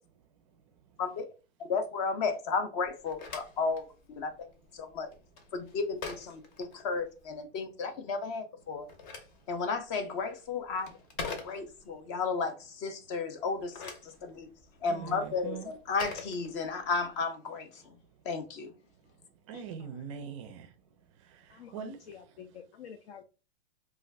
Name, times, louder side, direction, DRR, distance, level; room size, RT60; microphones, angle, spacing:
voice 1, 1.7-4.5 4.7-5.1 5.5-8.9 9.5-10.9 11.4-14.5 14.8-15.6 15.9-17.7 18.3-18.7, left 4 dB, 30° left, 0.4 m, -33 dB
Telephone, 2.8-7.4 8.6-12.0 13.4-17.0, left 4 dB, 45° left, 0.9 m, -45 dB
voice 2, 14.9-15.7 19.5-20.7 21.3-22.0, right 7 dB, 30° right, 0.4 m, -42 dB
voice 3, 21.5-23.2, left 7 dB, 70° left, 0.6 m, -48 dB
2.4 x 2.3 x 3.2 m
hypercardioid pair, 145°, 32 cm